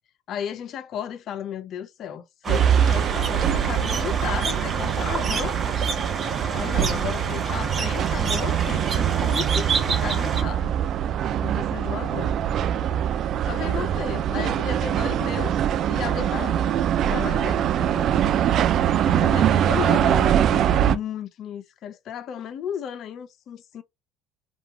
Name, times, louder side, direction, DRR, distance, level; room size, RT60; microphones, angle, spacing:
voice 1, 0.3-5.6 6.5-10.8 11.4-12.4 13.4-15.6 15.8-16.7 17.0-18.1 19.1-23.8, left 9 dB, 55° left, 0.4 m, -34 dB
sound 1, 2.4-10.4, right 5 dB, 35° right, 0.7 m, -29 dB
sound 2, 2.5-20.9, right 10 dB, 55° right, 0.3 m, -23 dB
2.7 x 2.3 x 2.6 m
supercardioid pair, 85°, 0 cm